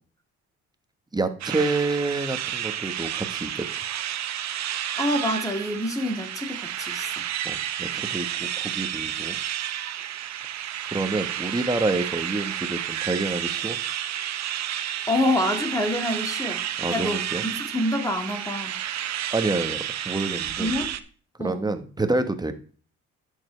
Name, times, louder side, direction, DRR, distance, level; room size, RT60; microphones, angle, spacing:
voice 1, 1.1-3.9 7.4-9.4 10.9-13.8 16.8-17.4 19.3-20.7 21.4-22.6, right 3 dB, 15° right, 1.2 m, -28 dB
sound 1, 1.4-21.0, right 11 dB, 60° right, 0.8 m, -31 dB
voice 2, 5.0-7.3 15.1-17.2 17.7-18.8 20.6-20.9 21.4-21.7, left 1 dB, 10° left, 1.9 m, -27 dB
11.5 x 6.8 x 3.3 m
cardioid pair, 90°, 30 cm